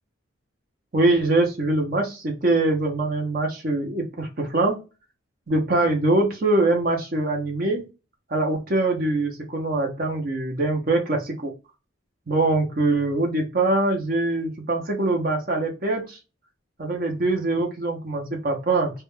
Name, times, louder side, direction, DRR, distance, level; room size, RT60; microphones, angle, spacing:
voice 1, 0.9-4.8 5.5-7.8 8.3-11.5 12.3-16.2 16.8-18.9, right 2 dB, 45° right, 1 dB, 0.6 m, -23 dB
2.3 x 2.2 x 3.0 m, 0.30 s
head